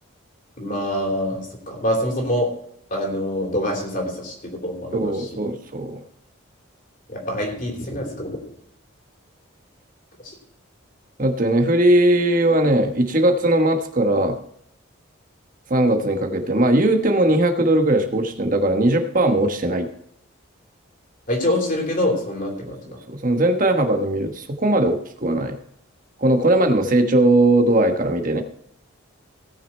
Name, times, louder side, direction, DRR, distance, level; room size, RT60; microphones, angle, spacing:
voice 1, 0.6-2.5 2.9-5.5 7.1-8.4 10.2-10.3 21.3-22.8, left 1 dB, 40° left, 1 dB, 3.1 m, -25 dB
voice 2, 4.9-6.0 11.2-14.3 15.7-19.9 22.6-22.7 23.1-25.6 26.2-28.4, right 1 dB, 40° right, 5 dB, 1.3 m, -19 dB
17.5 x 6.5 x 4.4 m, 0.70 s
head